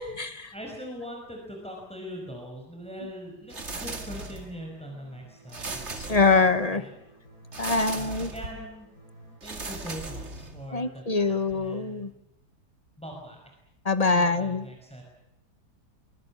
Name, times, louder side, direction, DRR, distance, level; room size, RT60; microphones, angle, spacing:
voice 1, 0.0-0.5 6.0-6.8 7.6-8.3 10.7-12.1 13.8-14.6, left 4 dB, 25° left, 11 dB, 1.1 m, -24 dB
voice 2, 0.5-6.2 6.7-6.9 7.9-8.9 9.4-12.1 13.0-13.5 14.1-15.0, equal, 5° left, 1 dB, 5.5 m, -41 dB
sound 1, 3.5-4.6 5.5-6.7 7.5-8.6 9.4-10.7, right 3 dB, 40° right, 2.6 m, -37 dB
sound 2, 3.8-9.4, right 1 dB, 55° left, 7.3 m, -53 dB
sound 3, 8.4-8.9 9.1-12.9, right 1 dB, 80° right, 6.7 m, -50 dB
24.5 x 24.5 x 7.3 m, 0.85 s
omnidirectional pair, 1.8 m